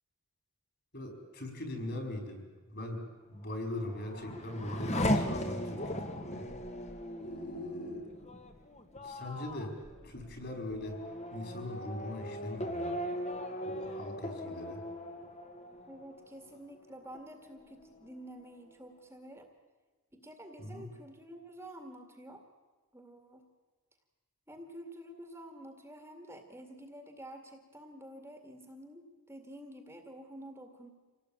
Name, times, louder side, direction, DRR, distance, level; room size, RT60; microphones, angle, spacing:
voice 1, 0.9-2.4 2.7-3.0 3.3-6.5 7.2-8.0 9.0-9.7 10.0-10.9 11.3-13.0 13.6-14.8 15.2-15.3 20.6-20.8, left 1 dB, 45° left, 5 dB, 5.0 m, -40 dB
Race car auto racing / Accelerating revving vroom, 3.6-16.8 17.1-17.8, equal, 30° left, 1.9 m, -38 dB
voice 2, 15.9-19.5 20.1-22.4 22.9-23.5 24.5-30.9, right 1 dB, 10° right, 5 dB, 2.0 m, -49 dB
26.5 x 18.0 x 8.9 m, 1.3 s
head